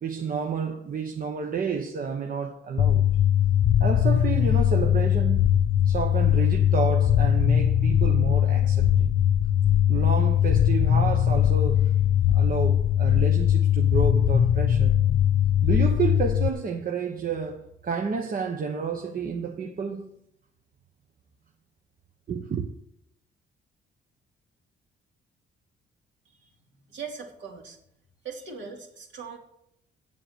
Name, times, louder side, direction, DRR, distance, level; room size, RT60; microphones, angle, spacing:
voice 1, 0.0-3.0 3.8-5.5 5.8-9.2 9.9-11.9 12.3-14.9 15.6-20.1 22.3-22.6, right 5 dB, 45° right, 1.0 m, -30 dB
sound 1, 2.8-16.5, left 10 dB, 50° left, 0.5 m, -21 dB
voice 2, 26.9-27.8 28.2-29.4, right 5 dB, 65° right, 2.7 m, -40 dB
7.8 x 7.7 x 8.0 m
cardioid pair, 90°, 20 cm